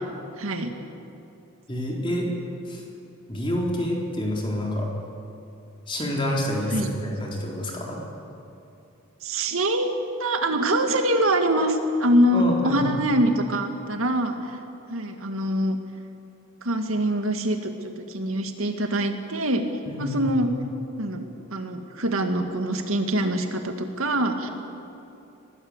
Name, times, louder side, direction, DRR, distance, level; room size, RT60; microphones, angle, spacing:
voice 1, 0.4-0.7 6.7-6.9 9.2-9.9 10.2-14.6 14.9-15.8 16.6-17.7 18.1-19.7 20.0-20.5 21.0-21.2 21.5-24.5, right 1 dB, 75° right, 5 dB, 2.2 m, -24 dB
voice 2, 1.7-2.3 2.7-2.8 3.3-4.9 5.9-8.0 12.3-13.2 19.9-20.4, equal, 25° left, -1 dB, 3.9 m, -28 dB
23.5 x 18.5 x 8.2 m, 2.7 s
head